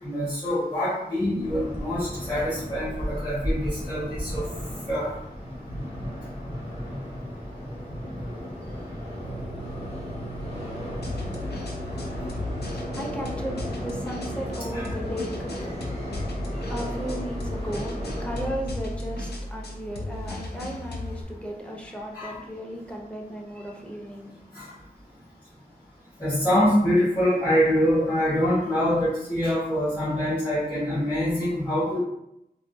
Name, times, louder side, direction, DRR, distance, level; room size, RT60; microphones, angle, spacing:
voice 1, 0.0-4.5 4.9-5.1 14.7-14.9 22.1-22.4 24.5-24.7 26.2-32.0, equal, 25° left, -12 dB, 1.5 m, -25 dB
sound 1, 1.4-18.5, equal, 40° left, 1.1 m, -34 dB
sound 2, 9.2-16.9, right 4 dB, 75° right, 0.4 m, -43 dB
sound 3, 11.0-21.2, left 1 dB, 85° left, 0.5 m, -35 dB
voice 2, 11.8-24.3, equal, 5° left, -1 dB, 0.6 m, -36 dB
3.5 x 2.2 x 2.6 m, 0.84 s
wide cardioid pair, 60°, 17 cm